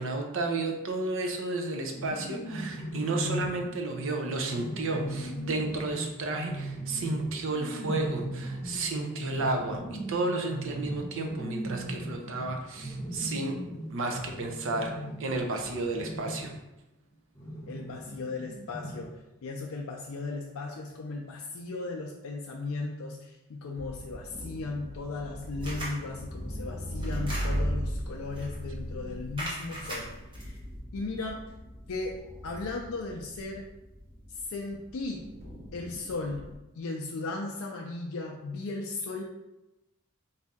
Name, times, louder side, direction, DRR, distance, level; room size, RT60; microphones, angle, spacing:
voice 1, 0.0-9.8 10.1-13.6 13.9-14.9 15.2-16.5, right 2 dB, 60° right, 3 dB, 0.6 m, -32 dB
sound 1, 1.9-16.6 17.3-19.2, right 1 dB, 15° left, 0.6 m, -38 dB
voice 2, 17.7-19.1 19.4-30.6 30.9-31.4 31.9-33.7 34.3-35.2 35.7-36.4 36.8-39.2, left 3 dB, 65° left, 1 dB, 0.4 m, -36 dB
sound 2, 23.8-36.5, equal, 45° right, 1.4 m, -38 dB
sound 3, 25.6-26.0 27.0-27.8 28.4-28.6 29.4-30.4, equal, 20° right, 0.9 m, -38 dB
4.1 x 2.6 x 3.5 m, 0.96 s
head